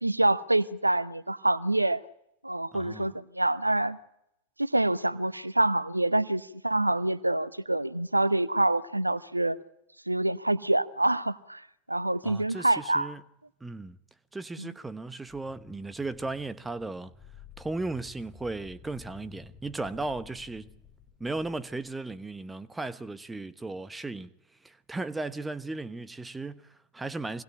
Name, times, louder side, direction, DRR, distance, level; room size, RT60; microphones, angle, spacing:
voice 1, 0.0-2.0 2.4-4.0 4.6-9.6 10.1-11.6 11.9-13.1 14.6-14.7, right 1 dB, 85° right, 0.9 m, -26 dB
voice 2, 2.7-3.1 12.2-13.2 13.6-14.0 14.3-17.1 17.6-20.7 21.2-24.3 24.6-27.4, right 2 dB, 10° right, 1.1 m, -36 dB
sound 1, 15.3-22.4, left 5 dB, 15° left, 5.1 m, -52 dB
26.0 x 21.5 x 8.8 m
figure-of-eight pair, 90°, 0 cm